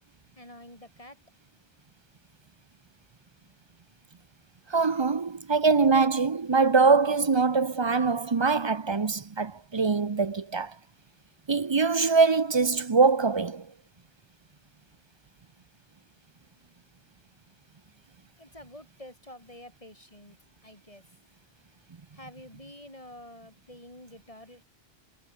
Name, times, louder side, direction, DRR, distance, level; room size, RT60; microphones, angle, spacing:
voice 1, 0.4-1.2 18.4-20.4 20.6-21.0 22.1-24.7, left 1 dB, 30° left, 6.6 m, -48 dB
voice 2, 4.7-10.7 11.5-13.7, right 4 dB, 30° right, 0.6 m, -23 dB
omnidirectional pair, 1.1 m